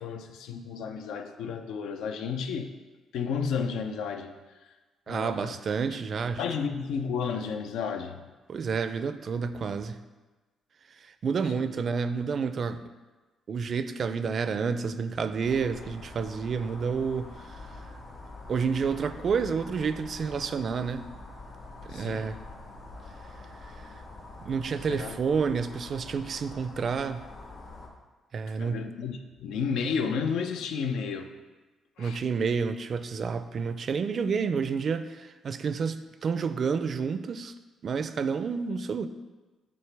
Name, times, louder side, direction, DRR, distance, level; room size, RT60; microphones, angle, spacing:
voice 1, 0.0-2.7 3.1-4.4 4.6-4.7 5.1-5.6 5.9-6.0 6.4-8.2 11.5-11.8 21.9-22.4 24.9-25.2 28.6-31.3 32.0-32.2, left 6 dB, 85° left, 6 dB, 0.5 m, -32 dB
voice 2, 5.1-6.4 8.5-10.0 11.0-12.8 13.5-17.6 18.5-21.1 21.8-22.3 23.7-23.8 24.4-27.2 28.3-28.9 32.0-37.5 37.8-39.1, right 5 dB, 50° right, 11 dB, 0.4 m, -29 dB
sound 1, 15.4-27.9, left 2 dB, 65° left, 1.3 m, -45 dB
8.5 x 4.1 x 3.4 m, 1.2 s
cardioid pair, 90°, 0 cm